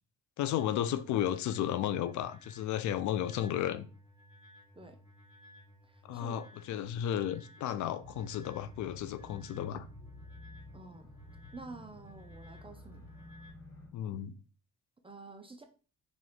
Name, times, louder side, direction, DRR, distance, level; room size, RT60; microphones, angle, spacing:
voice 1, 0.4-3.9 6.1-9.9 13.9-14.3, left 10 dB, 75° left, 0.5 m, -33 dB
sound 1, 0.6-13.5, left 1 dB, 15° left, 1.3 m, -58 dB
voice 2, 5.8-6.4 10.7-11.1 11.5-13.0 15.0-15.6, right 3 dB, 20° right, 0.4 m, -49 dB
sound 2, 8.0-13.9, left 1 dB, 50° left, 1.2 m, -52 dB
3.0 x 2.5 x 4.0 m
cardioid pair, 90°, 30 cm